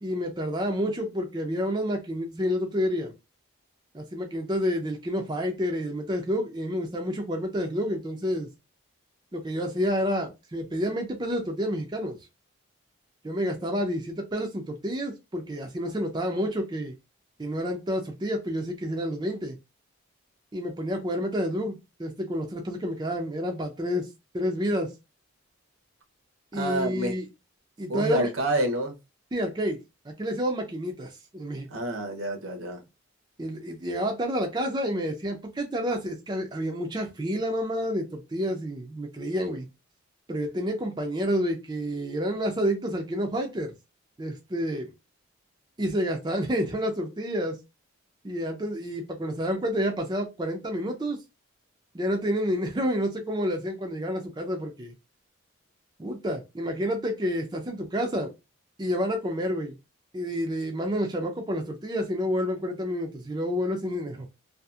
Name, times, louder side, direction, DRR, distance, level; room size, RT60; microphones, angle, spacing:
voice 1, 0.0-3.1 3.9-8.5 9.3-12.2 13.2-16.9 17.4-19.6 20.5-24.1 24.3-24.9 26.5-27.2 27.8-28.3 29.3-29.8 30.0-31.8 33.4-39.7 40.3-43.7 44.2-44.9 45.8-47.6 48.2-51.2 51.9-54.9 56.0-58.3 58.8-59.8 60.1-64.3, equal, 20° right, 0.4 m, -29 dB
voice 2, 26.5-27.1 27.9-29.0 31.7-32.8, right 1 dB, 75° right, 0.7 m, -28 dB
2.7 x 2.4 x 2.3 m
head